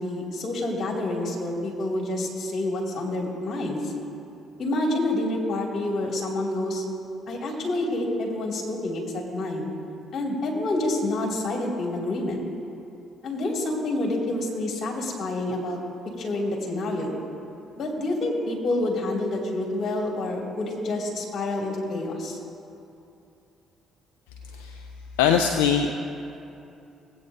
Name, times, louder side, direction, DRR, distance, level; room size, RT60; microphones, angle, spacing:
voice 1, 0.0-3.9 4.6-6.8 7.3-9.7 10.1-12.4 13.2-15.8 16.2-17.1 17.8-22.4, left 1 dB, 55° left, -1 dB, 2.4 m, -28 dB
voice 2, 24.5-24.9 25.2-25.9, left 7 dB, 85° left, 5 dB, 0.4 m, -22 dB
18.0 x 8.6 x 2.7 m, 2.7 s
hypercardioid pair, 55°, 0 cm